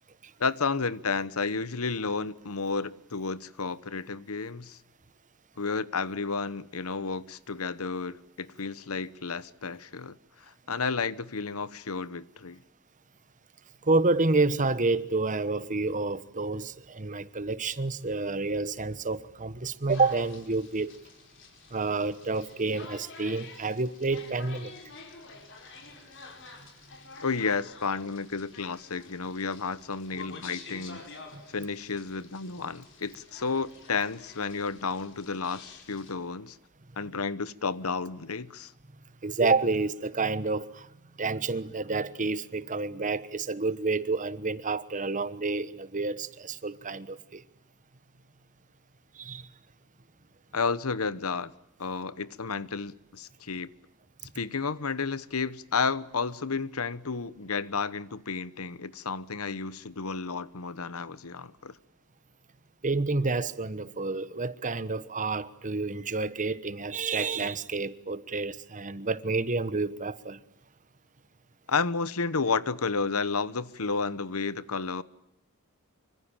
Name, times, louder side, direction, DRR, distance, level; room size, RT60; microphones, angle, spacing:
voice 1, 0.4-4.8 5.6-10.1 10.5-12.6 27.2-31.0 31.5-36.6 37.0-38.7 50.5-51.5 51.8-53.7 54.3-61.7 71.7-75.0, left 4 dB, 75° left, 1.1 m, -31 dB
voice 2, 13.8-20.9 21.7-24.7 31.3-31.4 39.2-40.9 41.2-47.4 49.2-49.4 62.8-70.4, right 3 dB, 35° right, 1.2 m, -29 dB
sound 1, 19.9-36.1, left 4 dB, 55° left, 5.4 m, -49 dB
25.5 x 25.0 x 8.9 m
head